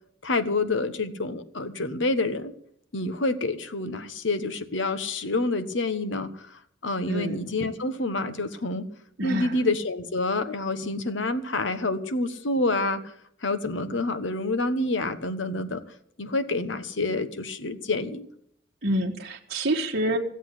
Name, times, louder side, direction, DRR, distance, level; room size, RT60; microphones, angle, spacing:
voice 1, 0.2-2.5 2.9-8.9 9.2-13.0 13.4-15.8 16.2-18.3, left 2 dB, 70° left, 11 dB, 1.3 m, -28 dB
voice 2, 7.1-7.4 9.2-9.6 18.8-20.2, right 1 dB, 55° right, -2 dB, 1.3 m, -27 dB
16.0 x 8.1 x 8.2 m, 0.69 s
head